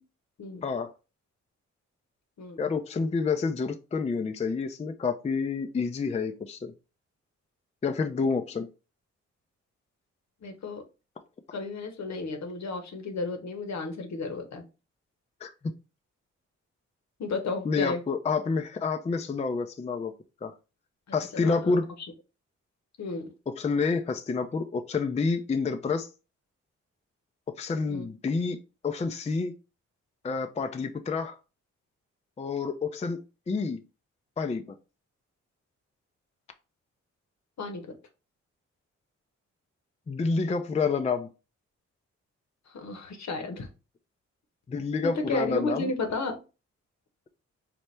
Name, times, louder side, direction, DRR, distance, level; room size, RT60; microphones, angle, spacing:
voice 1, 2.6-6.7 7.8-8.7 15.4-15.5 17.7-20.1 20.4-20.5 21.1-21.9 23.6-26.1 27.6-28.6 28.8-29.5 30.2-31.4 32.4-33.8 34.4-34.6 40.1-41.3 44.7-45.9, left 4 dB, 20° left, 0.4 m, -28 dB
voice 2, 10.4-10.8 11.5-14.7 17.2-18.0 21.3-21.7 23.0-23.3 27.9-28.1 37.6-37.9 42.7-43.7 45.0-46.4, left 3 dB, 60° left, 0.9 m, -33 dB
4.3 x 2.1 x 3.2 m
supercardioid pair, 50°, 31 cm